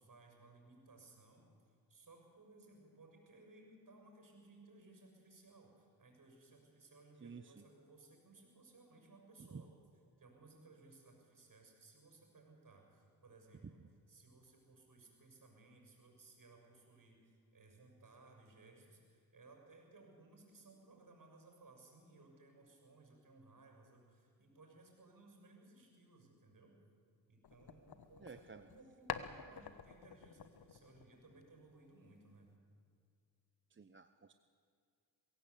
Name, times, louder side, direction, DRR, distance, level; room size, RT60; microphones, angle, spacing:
voice 1, 0.0-9.7 10.2-13.8 14.1-26.8 27.3-32.5, right 3 dB, 50° right, 3 dB, 6.6 m, -62 dB
voice 2, 7.2-7.6 9.5-9.6 28.2-28.6 33.7-34.3, right 5 dB, 30° right, 10 dB, 0.8 m, -52 dB
sound 1, 27.4-28.8 29.1-31.7, left 8 dB, 65° left, 1.3 m, -48 dB
22.5 x 16.0 x 8.3 m, 2.3 s
cardioid pair, 60°, 42 cm